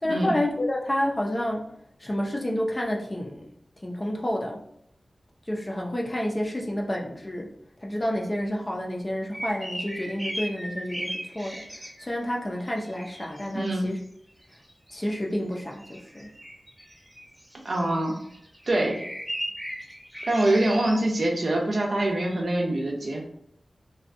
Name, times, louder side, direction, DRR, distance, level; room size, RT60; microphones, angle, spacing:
voice 1, 0.0-1.7 2.0-3.5 3.8-4.6 5.5-7.5 7.8-14.0 14.9-16.3, left 1 dB, 25° left, -1 dB, 0.5 m, -29 dB
sound 1, 9.3-12.3 12.6-14.0 14.4-15.1 15.5-21.5 22.2-22.4, equal, 5° right, 0.8 m, -38 dB
voice 2, 13.5-13.9 17.6-18.2 18.7-19.0 20.3-23.2, right 1 dB, 65° right, -1 dB, 0.6 m, -24 dB
2.5 x 2.3 x 2.5 m, 0.72 s
wide cardioid pair, 70°, 0 cm